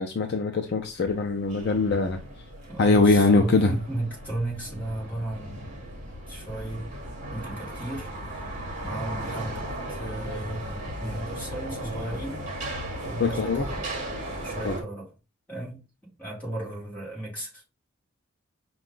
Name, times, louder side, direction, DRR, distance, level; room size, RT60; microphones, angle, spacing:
voice 1, 0.0-2.2 2.8-3.7 13.2-13.7 14.6-14.8, left 3 dB, 50° left, 0.4 m, -22 dB
sound 1, 0.9-14.8, right 1 dB, 35° right, 1.2 m, -36 dB
voice 2, 2.7-5.9 6.3-6.9 7.3-12.5 13.0-13.9 14.4-15.1 15.5-15.8 16.2-17.6, right 1 dB, 5° left, 2.0 m, -35 dB
5.3 x 2.3 x 3.7 m
head